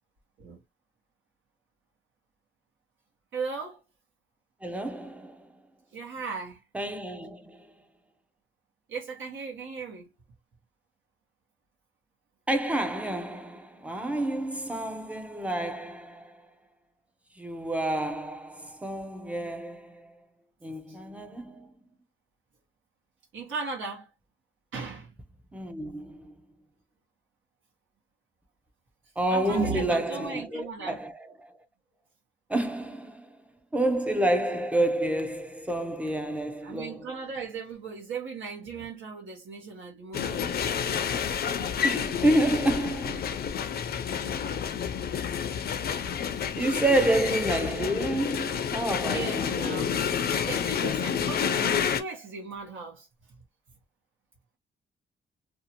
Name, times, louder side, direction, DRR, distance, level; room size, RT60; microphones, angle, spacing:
voice 1, 3.3-3.8 5.9-6.6 8.9-10.1 23.3-24.1 24.7-25.1 29.3-31.0 36.6-40.5 49.1-50.0 50.5-53.1, right 4 dB, 85° right, 1.1 m, -36 dB
voice 2, 4.6-5.4 6.7-7.7 12.5-16.5 17.4-20.1 20.6-21.7 25.5-26.3 29.2-31.5 32.5-33.3 33.7-37.2 41.8-43.6 44.3-44.6 46.6-50.1, right 1 dB, 5° right, 0.5 m, -29 dB
sound 1, 40.1-52.0, left 7 dB, 55° left, 0.4 m, -29 dB
2.7 x 2.4 x 2.8 m
wide cardioid pair, 145°, 20 cm